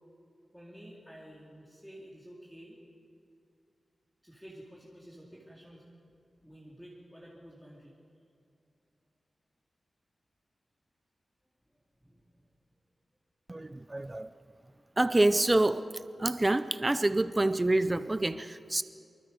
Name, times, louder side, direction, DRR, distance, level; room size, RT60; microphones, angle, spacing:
voice 1, 0.5-2.8 4.2-5.9 6.4-7.9 11.7-12.3, equal, ahead, -4 dB, 2.4 m, -51 dB
voice 2, 13.5-14.3 15.0-15.9 16.2-18.8, right 2 dB, 15° right, 12 dB, 0.5 m, -27 dB
25.0 x 23.5 x 5.2 m, 2.5 s
wide cardioid pair, 180°, 0 cm